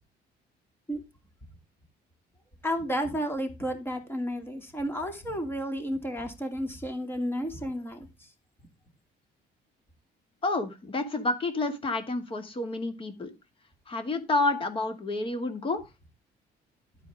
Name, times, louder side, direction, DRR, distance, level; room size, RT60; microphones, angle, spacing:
voice 1, 2.6-8.1, equal, 10° left, 2.7 m, -32 dB
voice 2, 10.4-13.3 13.9-15.8, left 2 dB, 30° left, 2.4 m, -29 dB
12.0 x 9.0 x 3.7 m
cardioid pair, 155°, 18 cm